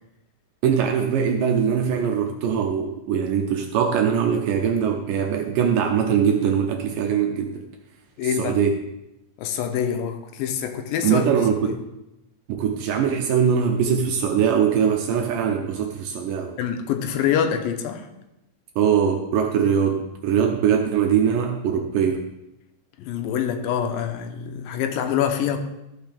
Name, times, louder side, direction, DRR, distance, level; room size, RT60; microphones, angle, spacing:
voice 1, 0.6-7.6 8.4-8.7 11.0-11.7 12.5-16.5 18.8-22.2, right 7 dB, 75° right, 3 dB, 2.3 m, -22 dB
voice 2, 8.2-8.6 9.4-11.3 11.6-11.8 16.6-18.1 23.0-25.6, left 8 dB, 85° left, 6 dB, 2.5 m, -25 dB
14.0 x 5.8 x 3.4 m, 0.90 s
omnidirectional pair, 4.0 m